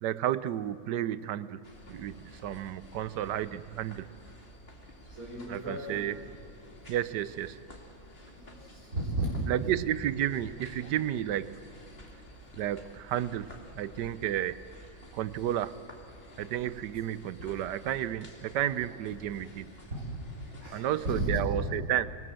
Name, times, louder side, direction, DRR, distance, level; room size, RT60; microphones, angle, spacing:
voice 1, 0.0-4.1 5.5-6.2 6.9-7.6 9.5-11.6 12.6-14.6 15.1-15.8 16.4-19.7 20.7-22.1, right 12 dB, 80° right, 16 dB, 1.3 m, -32 dB
sound 1, 1.6-21.3, left 1 dB, 35° left, 2.9 m, -51 dB
voice 2, 5.2-6.0 8.3-9.3 20.6-21.7, right 1 dB, 55° right, -6 dB, 5.0 m, -34 dB
26.0 x 18.5 x 7.7 m, 2.9 s
omnidirectional pair, 1.8 m